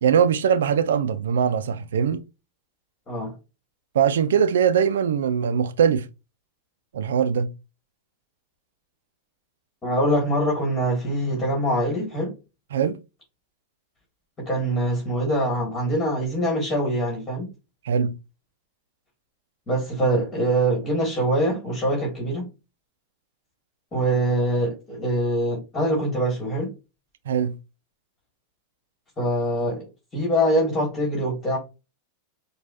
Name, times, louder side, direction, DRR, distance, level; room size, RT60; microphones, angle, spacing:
voice 1, 0.0-2.2 3.9-6.1 6.9-7.5 12.7-13.0 17.8-18.1 27.3-27.6, right 7 dB, 85° right, 0.4 m, -21 dB
voice 2, 9.8-12.3 14.4-17.5 19.7-22.5 23.9-26.7 29.2-29.8 30.1-31.6, right 1 dB, 25° left, 1.8 m, -24 dB
4.7 x 2.3 x 2.5 m
hypercardioid pair, 115°, 0 cm